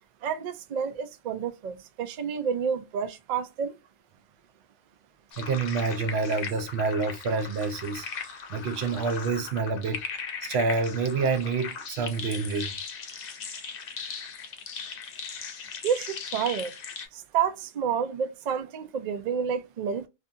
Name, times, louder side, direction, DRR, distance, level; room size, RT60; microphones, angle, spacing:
voice 1, 0.2-3.8 15.8-16.7 17.1-20.1, right 7 dB, 55° right, 0.5 m, -29 dB
sound 1, 5.3-17.1, left 6 dB, 60° left, 0.8 m, -38 dB
voice 2, 5.4-8.1 8.5-10.1 10.4-12.8, right 4 dB, 80° right, 0.8 m, -28 dB
2.7 x 2.5 x 2.3 m
omnidirectional pair, 1.1 m